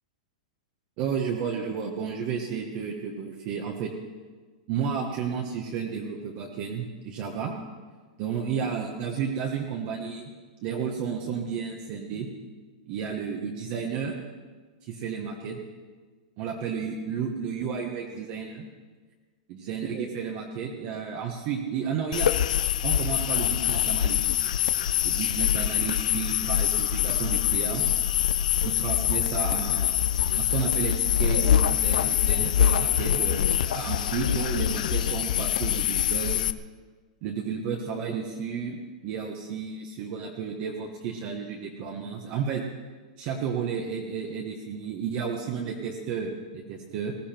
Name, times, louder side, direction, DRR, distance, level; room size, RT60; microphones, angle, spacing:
voice 1, 1.0-3.9 4.7-7.5 8.2-10.3 10.6-12.3 12.9-14.2 14.9-15.6 16.4-18.6 19.5-22.3 22.8-24.2 25.0-27.8 28.6-30.0 30.3-36.4 37.2-38.8 39.0-42.6 43.2-47.1, right 6 dB, 40° right, 0 dB, 1.5 m, -32 dB
sound 1, 22.1-36.5, left 10 dB, 75° left, 0.6 m, -24 dB
20.0 x 14.5 x 4.5 m, 1.4 s
supercardioid pair, 150°, 4 cm